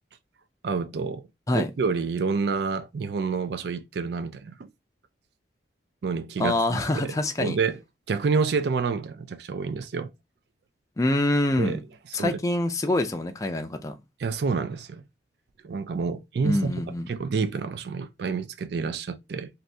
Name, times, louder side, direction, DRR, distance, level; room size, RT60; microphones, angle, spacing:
voice 1, 0.6-1.2 1.5-4.7 6.0-7.8 8.1-10.1 11.6-11.8 12.2-12.4 14.2-15.0 15.6-16.7 17.1-19.5, right 5 dB, 60° right, 0.4 m, -28 dB
voice 2, 6.4-7.6 11.0-11.8 12.1-13.9 16.4-17.1, left 1 dB, 20° left, 0.4 m, -25 dB
2.6 x 2.6 x 3.2 m
head